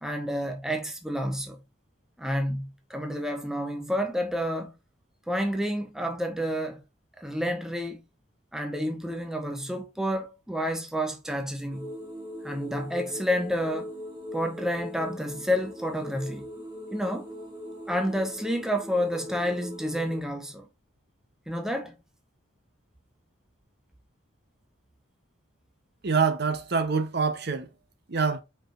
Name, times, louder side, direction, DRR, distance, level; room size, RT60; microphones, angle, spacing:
voice 1, 0.0-1.6 2.2-4.7 5.3-6.8 7.2-8.0 8.5-11.9 12.4-13.9 14.3-16.5 16.9-17.3 17.9-20.7 21.5-22.0, equal, 5° right, 0.6 m, -29 dB
sound 1, 11.7-20.2, equal, 20° right, 2.1 m, -40 dB
voice 2, 26.0-27.7 28.1-28.4, right 5 dB, 50° right, 0.7 m, -25 dB
4.8 x 4.5 x 2.5 m
head